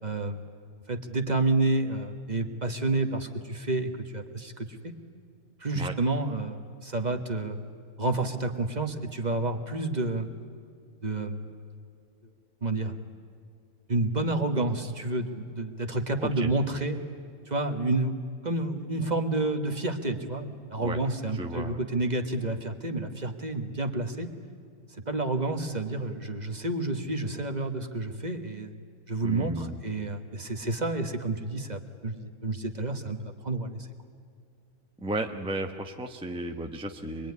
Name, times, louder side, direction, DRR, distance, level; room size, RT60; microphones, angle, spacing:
voice 1, 0.0-0.4 0.9-4.9 5.6-7.6 8.0-10.3 11.0-11.4 12.6-13.0 13.9-17.0 17.5-18.1 18.4-24.3 25.1-28.7 29.1-33.9, right 2 dB, 30° right, 5 dB, 1.3 m, -29 dB
voice 2, 16.2-16.5 20.8-21.0 21.3-21.8 29.2-29.8 35.0-37.3, right 2 dB, 5° right, 3 dB, 0.7 m, -34 dB
25.5 x 22.0 x 9.5 m, 2.3 s
omnidirectional pair, 1.6 m